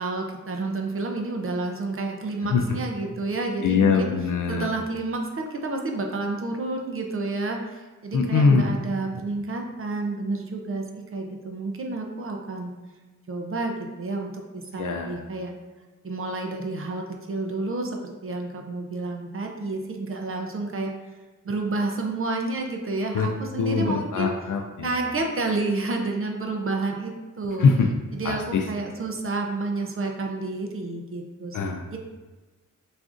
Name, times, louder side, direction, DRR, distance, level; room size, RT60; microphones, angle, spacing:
voice 1, 0.0-4.1 4.5-12.7 13.3-15.5 16.0-21.2 21.4-24.3 24.8-27.7 28.1-32.0, right 3 dB, 45° right, 2 dB, 0.5 m, -30 dB
voice 2, 3.6-4.7 8.1-8.7 14.8-15.1 23.1-23.3 23.6-24.9 27.6-27.9 28.2-28.6 31.5-31.8, left 5 dB, 80° left, 2 dB, 0.5 m, -22 dB
6.2 x 2.5 x 2.5 m, 1.3 s
wide cardioid pair, 150°, 31 cm